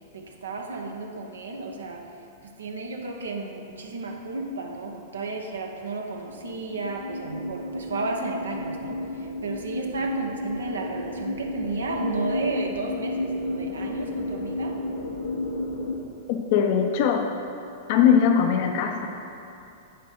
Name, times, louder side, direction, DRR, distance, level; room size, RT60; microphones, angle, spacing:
voice 1, 0.1-2.0 2.4-14.8, right 3 dB, 75° right, 2 dB, 0.9 m, -33 dB
sound 1, 6.2-16.0, left 2 dB, 85° left, 1.0 m, -32 dB
voice 2, 16.3-17.3 17.9-19.1, left 7 dB, 50° left, 4 dB, 0.6 m, -21 dB
9.4 x 3.8 x 6.2 m, 2.7 s
figure-of-eight pair, 100°, 0 cm